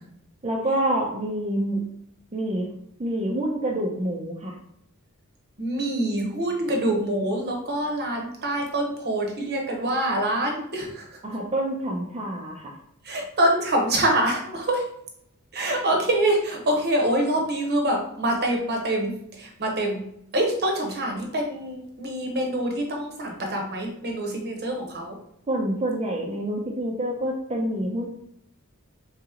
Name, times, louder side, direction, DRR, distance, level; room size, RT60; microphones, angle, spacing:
voice 1, 0.4-1.8 2.3-2.7 3.0-4.5 11.2-12.7 25.5-28.1, right 1 dB, 30° right, -3 dB, 0.5 m, -27 dB
voice 2, 5.6-11.1 13.0-14.8 15.5-20.0 20.3-25.2, right 1 dB, 50° right, 1 dB, 0.9 m, -25 dB
3.9 x 2.9 x 3.6 m, 0.72 s
head